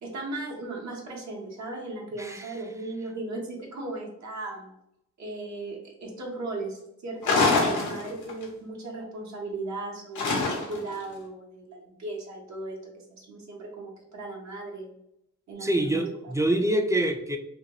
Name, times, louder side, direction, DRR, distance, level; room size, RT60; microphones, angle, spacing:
voice 1, 0.0-4.7 5.2-14.9 15.5-16.1, right 2 dB, 65° right, -2 dB, 0.8 m, -37 dB
voice 2, 2.2-2.5 15.6-17.4, right 1 dB, 10° right, 5 dB, 0.3 m, -25 dB
sound 1, 7.2-8.4 10.2-10.9, left 3 dB, 85° left, 0.8 m, -24 dB
2.8 x 2.2 x 2.8 m, 0.79 s
cardioid pair, 85°, 30 cm